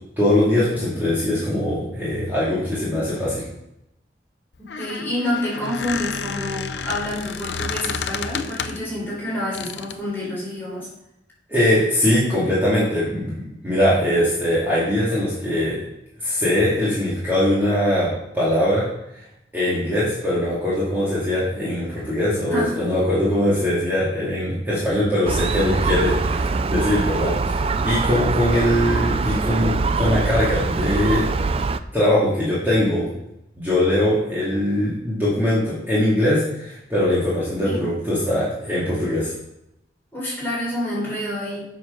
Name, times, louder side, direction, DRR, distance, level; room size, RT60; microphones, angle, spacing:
voice 1, 0.2-3.4 11.5-15.8 16.2-18.8 19.5-31.3 31.9-33.0 33.6-39.3, left 1 dB, 10° right, -9 dB, 2.2 m, -21 dB
Squeak, 4.5-8.9 9.5-10.0, left 5 dB, 75° left, 0.6 m, -30 dB
voice 2, 4.6-10.9 22.5-22.8 37.6-37.9 40.1-41.7, left 1 dB, 10° left, -6 dB, 3.9 m, -28 dB
Gull seagull, 25.3-31.8, right 4 dB, 30° right, 0.3 m, -23 dB
7.7 x 6.1 x 5.6 m, 0.85 s
head